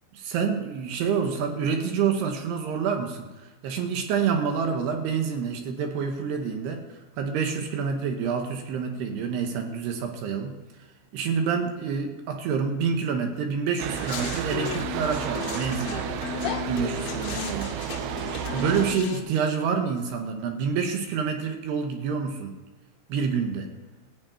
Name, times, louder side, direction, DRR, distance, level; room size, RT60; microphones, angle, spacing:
voice 1, 0.2-3.3 3.6-6.8 7.2-10.5 11.1-16.0 16.7-17.8 18.5-22.5 23.1-23.7, right 6 dB, 70° right, 4 dB, 2.9 m, -27 dB
sound 1, 13.8-19.0, right 12 dB, 90° right, 2.2 m, -32 dB
sound 2, 13.9-19.2, left 10 dB, 80° left, 3.1 m, -34 dB
15.5 x 5.2 x 8.7 m, 1.2 s
omnidirectional pair, 5.3 m